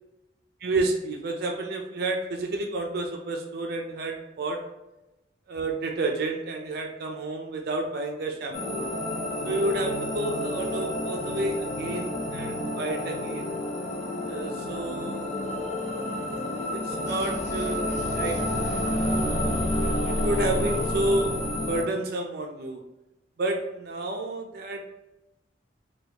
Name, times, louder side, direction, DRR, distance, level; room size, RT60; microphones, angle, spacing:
voice 1, 0.6-4.6 5.5-8.9 9.4-13.6 14.3-15.2 16.7-19.0 19.8-21.4 21.7-22.8 23.4-24.8, right 2 dB, 60° right, 2 dB, 0.4 m, -30 dB
sound 1, 8.5-21.8, left 1 dB, 40° left, 0.6 m, -29 dB
3.9 x 2.3 x 2.8 m, 0.95 s
head